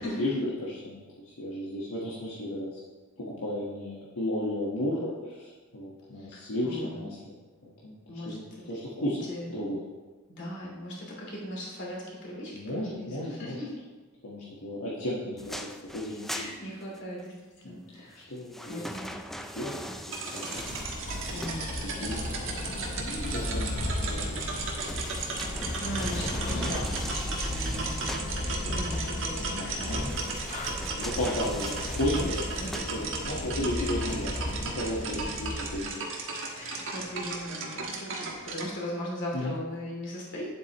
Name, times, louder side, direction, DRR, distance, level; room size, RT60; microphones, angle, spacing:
voice 1, 0.0-2.8 3.2-7.4 7.6-9.2 9.5-9.8 12.5-13.6 14.2-16.4 17.6-17.8 18.3-18.8 19.5-20.8 22.0-22.3 23.3-24.5 26.5-26.7 28.2-28.9 29.4-30.2 30.8-32.4 32.9-36.1 36.6-36.9 39.3-39.5, left 1 dB, 80° left, -6 dB, 1.4 m, -34 dB
voice 2, 6.2-7.0 8.1-8.4 9.3-9.6 10.3-13.7 16.3-18.3 18.6-19.1 21.3-23.5 25.8-30.1 32.1-32.3 32.6-32.7 33.8-33.9 36.5-40.5, equal, 55° left, -3 dB, 2.8 m, -39 dB
sound 1, 15.4-17.3 18.1-22.1 24.5-28.4 29.9-33.4 33.9-34.0, equal, ahead, 0.4 m, -41 dB
sound 2, 20.1-38.7, right 3 dB, 60° right, 1.3 m, -36 dB
sound 3, 20.6-35.9, left 1 dB, 30° left, 0.7 m, -35 dB
9.6 x 7.8 x 3.0 m, 1.3 s
head